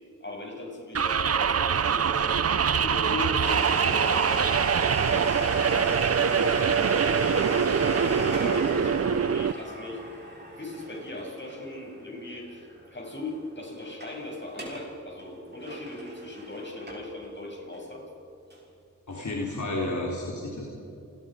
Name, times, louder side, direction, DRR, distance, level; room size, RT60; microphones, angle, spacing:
voice 1, 0.2-10.1 10.6-12.7 12.9-18.1, left 1 dB, 35° left, 0 dB, 7.4 m, -38 dB
sound 1, 0.9-9.5, right 7 dB, 50° right, 0.6 m, -24 dB
Domestic sounds home sounds, 3.4-12.9 13.1-13.2 13.8-14.2 14.5-14.9 15.2-17.3 17.7-17.8 18.5-18.6, right 1 dB, 35° right, 6.5 m, -35 dB
voice 2, 19.1-20.7, left 2 dB, 65° left, -3 dB, 3.8 m, -31 dB
29.0 x 21.0 x 5.2 m, 2.7 s
cardioid pair, 50°, 31 cm